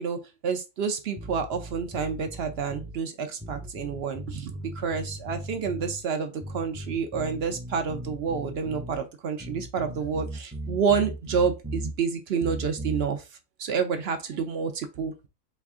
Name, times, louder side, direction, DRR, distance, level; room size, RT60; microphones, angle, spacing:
voice 1, 0.0-13.3 13.6-15.3, right 6 dB, 65° right, 0.6 m, -29 dB
sound 1, 1.2-3.0 3.4-6.0 6.4-9.0 9.4-12.0 12.4-13.1, right 1 dB, 15° right, 0.5 m, -37 dB
4.2 x 2.5 x 3.5 m
omnidirectional pair, 1.5 m